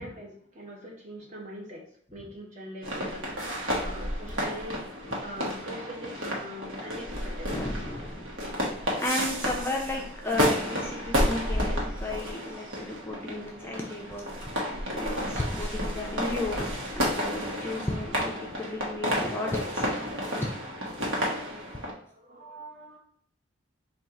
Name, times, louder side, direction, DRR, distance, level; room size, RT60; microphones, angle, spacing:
voice 1, 0.0-4.8 5.2-8.0 14.7-15.0 22.1-23.0, equal, 40° right, -1 dB, 0.9 m, -43 dB
sound 1, 2.8-21.9, equal, 90° right, 1.0 m, -31 dB
voice 2, 7.5-8.3 9.0-14.3 14.9-19.9 20.4-20.5 21.1-21.2, left 2 dB, 10° left, -1 dB, 0.4 m, -34 dB
4.2 x 2.3 x 3.6 m, 0.62 s
head